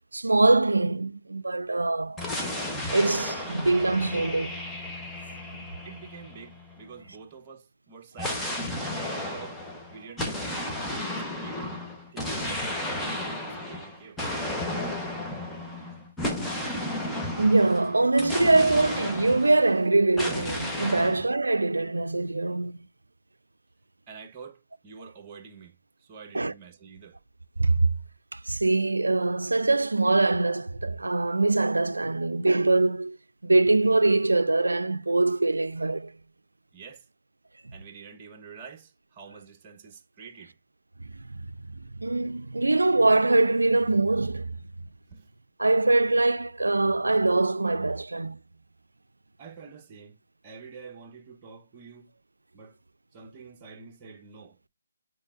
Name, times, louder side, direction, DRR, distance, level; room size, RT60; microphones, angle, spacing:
voice 1, 0.1-2.2 2.9-4.6 17.4-22.8 26.3-26.5 27.6-27.8 28.3-33.2 33.4-36.1 42.0-44.5 45.6-48.4, right 2 dB, 80° right, 0.4 m, -23 dB
sound 1, 2.2-6.9 8.2-19.8 20.2-21.2, left 1 dB, 5° left, 1.0 m, -33 dB
voice 2, 5.8-8.5 8.9-9.6 9.9-11.6 12.1-12.7 12.9-14.2 20.9-21.0 24.1-27.2 36.7-37.1 37.7-40.5 45.1-45.3 49.4-52.1 52.5-52.8 53.1-54.6, right 5 dB, 25° right, 1.0 m, -47 dB
8.7 x 4.4 x 2.4 m
figure-of-eight pair, 150°, 0 cm